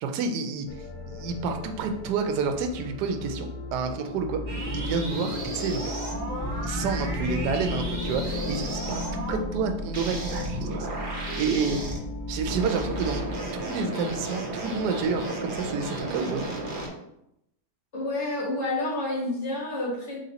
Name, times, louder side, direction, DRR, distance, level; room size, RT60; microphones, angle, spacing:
voice 1, 0.0-6.3 6.6-11.8 12.3-13.2 13.6-16.5, right 5 dB, 90° right, 5 dB, 1.2 m, -29 dB
sound 1, 0.7-13.7, left 2 dB, 90° left, 1.2 m, -35 dB
sound 2, 4.5-9.4 9.9-12.0 12.5-16.9, right 2 dB, 45° right, 0.7 m, -34 dB
sound 3, 6.3-6.5 7.3-7.5 8.3-8.5 9.3-9.5 10.3-10.5 11.3-11.6, left 4 dB, 65° left, 1.7 m, -39 dB
voice 2, 17.9-20.2, left 2 dB, 45° left, -5 dB, 1.4 m, -29 dB
3.6 x 2.8 x 3.9 m, 0.80 s
omnidirectional pair, 1.7 m